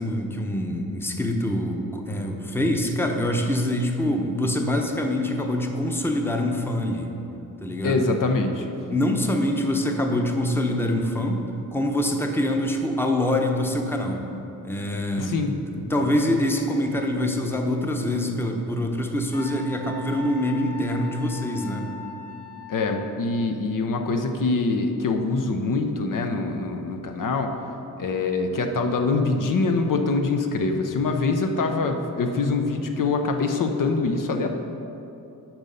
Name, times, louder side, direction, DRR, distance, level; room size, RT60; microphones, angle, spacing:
voice 1, 0.0-7.1 7.6-8.1 8.9-11.4 11.7-14.2 14.6-15.3 15.7-21.9, left 1 dB, 5° left, 3 dB, 0.8 m, -25 dB
voice 2, 7.8-8.7 15.2-15.7 22.7-27.6 28.0-34.5, left 3 dB, 60° left, 5 dB, 0.7 m, -24 dB
Wind instrument woodwind instrument, 19.3-23.4, left 3 dB, 40° left, 1.1 m, -40 dB
8.9 x 5.4 x 5.5 m, 2.8 s
cardioid pair, 100°, 36 cm